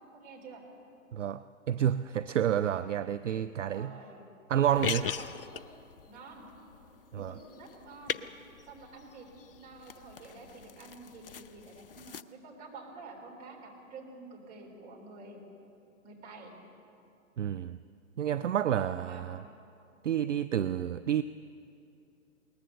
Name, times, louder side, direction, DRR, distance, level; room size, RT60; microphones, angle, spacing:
voice 1, 0.1-0.6 3.7-4.2 4.6-5.6 6.1-6.4 7.1-8.2 8.7-15.4 16.0-16.5 18.7-19.2, right 3 dB, 20° right, -1 dB, 3.6 m, -49 dB
voice 2, 1.1-3.9 4.5-5.1 7.1-7.4 17.4-17.8 18.2-19.4 20.0-21.2, right 10 dB, 60° right, 13 dB, 0.5 m, -29 dB
sound 1, 4.7-12.2, left 7 dB, 40° left, 0.5 m, -41 dB
21.0 x 19.0 x 6.8 m, 2.6 s
figure-of-eight pair, 125°, 42 cm